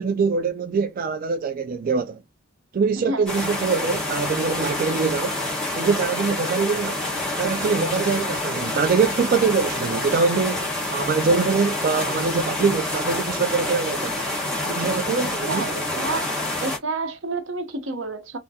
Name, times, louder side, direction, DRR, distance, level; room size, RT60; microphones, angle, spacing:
voice 1, 0.0-2.2 2.7-5.4 5.7-7.0 7.4-14.3 14.6-15.7, right 5 dB, 45° right, 0.3 m, -23 dB
sound 1, 3.3-16.8, left 1 dB, 5° left, 1.2 m, -27 dB
voice 2, 15.5-16.3 16.6-18.4, right 3 dB, 80° right, 0.8 m, -29 dB
3.5 x 2.1 x 2.7 m
head